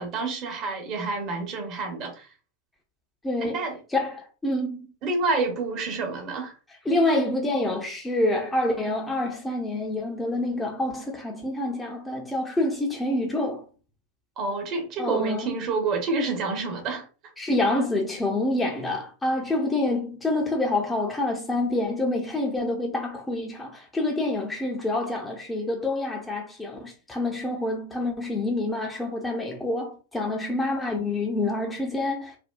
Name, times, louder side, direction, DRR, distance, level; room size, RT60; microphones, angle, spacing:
voice 1, 0.0-2.3 3.4-3.8 5.0-6.6 14.4-17.1, right 3 dB, 40° right, 0.8 m, -28 dB
voice 2, 3.2-3.6 3.9-4.9 6.9-13.6 15.0-15.5 17.4-32.4, left 2 dB, 10° left, 0.6 m, -27 dB
3.3 x 2.2 x 2.2 m
figure-of-eight pair, 90°, 0 cm